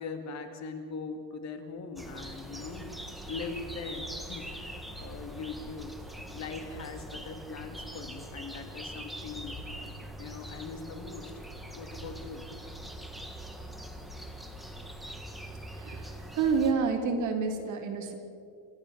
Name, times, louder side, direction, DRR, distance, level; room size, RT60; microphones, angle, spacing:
voice 1, 0.0-3.0 3.3-6.0 6.3-9.9 10.2-11.3 11.7-12.5, left 4 dB, 40° left, 6 dB, 2.3 m, -41 dB
sound 1, 2.0-16.7, right 1 dB, ahead, 1.6 m, -43 dB
voice 2, 15.7-18.1, right 5 dB, 45° right, 3 dB, 3.4 m, -29 dB
27.5 x 14.0 x 7.4 m, 2.4 s
cardioid pair, 155°, 41 cm